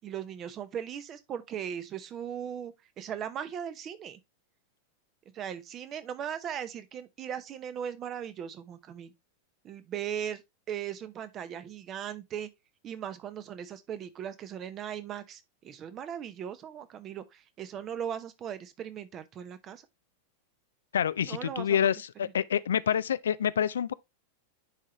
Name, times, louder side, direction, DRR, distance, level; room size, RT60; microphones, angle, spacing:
voice 1, 0.0-4.2 5.3-9.1 9.6-10.4 10.7-12.5 12.8-19.8 21.2-21.9 22.2-22.3, right 9 dB, 30° right, 0.8 m, -38 dB
voice 2, 20.9-23.9, left 9 dB, 65° left, 0.3 m, -27 dB
10.0 x 3.7 x 2.9 m
figure-of-eight pair, 90°, 0 cm